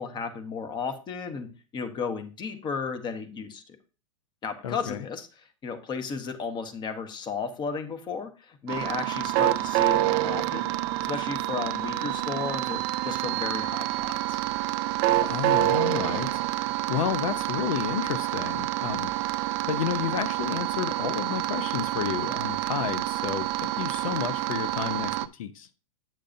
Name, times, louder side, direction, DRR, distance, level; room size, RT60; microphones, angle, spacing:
voice 1, 0.0-1.5 1.7-3.6 4.4-5.3 5.6-10.7 11.0-14.4, left 5 dB, 25° left, 1.0 m, -34 dB
voice 2, 4.6-5.1 15.2-19.1 19.7-25.7, left 9 dB, 80° left, 0.6 m, -31 dB
sound 1, 8.7-25.3, right 16 dB, 45° right, 0.5 m, -28 dB
8.9 x 6.4 x 2.6 m
hypercardioid pair, 125°, 17 cm